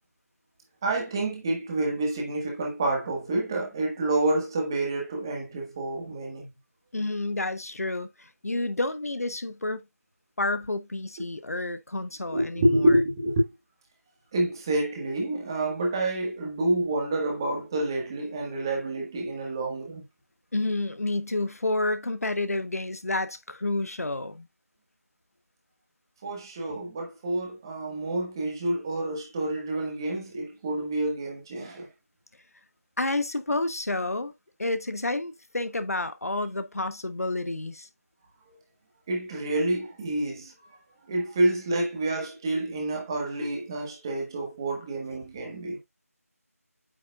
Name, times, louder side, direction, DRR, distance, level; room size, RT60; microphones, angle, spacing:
voice 1, 0.8-6.5 12.3-13.5 14.3-20.0 26.2-31.9 39.1-40.5 41.1-45.8, right 1 dB, 15° right, 1.5 m, -28 dB
voice 2, 6.9-9.8 10.4-13.0 20.5-24.5 33.0-34.3 34.6-37.9, left 2 dB, 70° left, 1.1 m, -30 dB
8.7 x 6.3 x 2.4 m
figure-of-eight pair, 170°, 8 cm